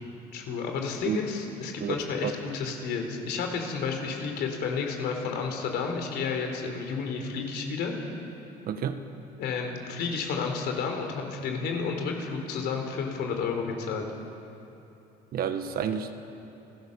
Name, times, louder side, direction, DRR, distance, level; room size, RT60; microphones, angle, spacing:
voice 1, 0.3-7.9 9.4-14.1, left 5 dB, 80° left, 3 dB, 3.9 m, -31 dB
voice 2, 1.8-2.3 8.7-9.0 15.3-16.1, right 8 dB, 60° right, 8 dB, 1.4 m, -30 dB
28.5 x 17.0 x 7.0 m, 2.9 s
cardioid pair, 110°, 17 cm